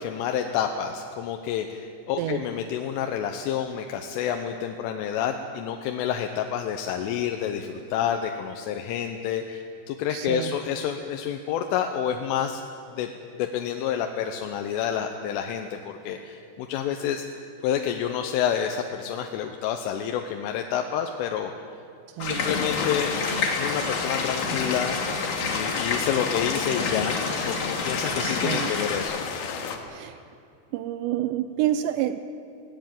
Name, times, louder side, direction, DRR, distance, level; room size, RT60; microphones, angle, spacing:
voice 1, 0.0-12.6 13.0-13.1 13.4-17.3 17.6-21.5 22.2-23.1 23.6-25.0 25.5-27.2 27.4-29.2, left 9 dB, 80° left, 5 dB, 3.4 m, -29 dB
voice 2, 10.1-10.5 22.2-22.5 27.8-28.7 29.9-30.2 30.7-32.2, right 12 dB, 90° right, 11 dB, 2.5 m, -29 dB
sound 1, 22.2-29.0, left 4 dB, 45° left, 3.9 m, -29 dB
sound 2, 22.4-29.8, left 6 dB, 65° left, 3.0 m, -33 dB
20.5 x 17.5 x 9.1 m, 2.6 s
omnidirectional pair, 5.8 m